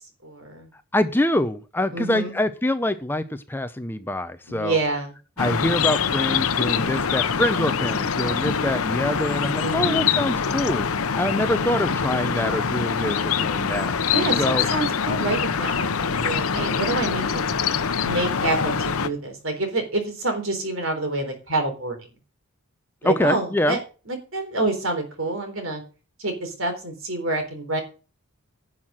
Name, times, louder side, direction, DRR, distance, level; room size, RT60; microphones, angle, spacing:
voice 1, 0.2-0.7 1.9-2.3 4.5-5.1 9.6-10.1 14.1-17.4 18.0-22.0 23.0-23.8 24.1-25.8 26.2-27.8, right 2 dB, 65° right, 5 dB, 3.7 m, -27 dB
voice 2, 0.9-4.8 5.4-10.9 11.1-13.9 14.4-14.7 23.0-23.8, left 1 dB, 10° left, 11 dB, 0.6 m, -25 dB
sound 1, 5.4-19.1, left 6 dB, 80° left, 0.8 m, -24 dB
11.0 x 5.8 x 7.5 m, 0.35 s
head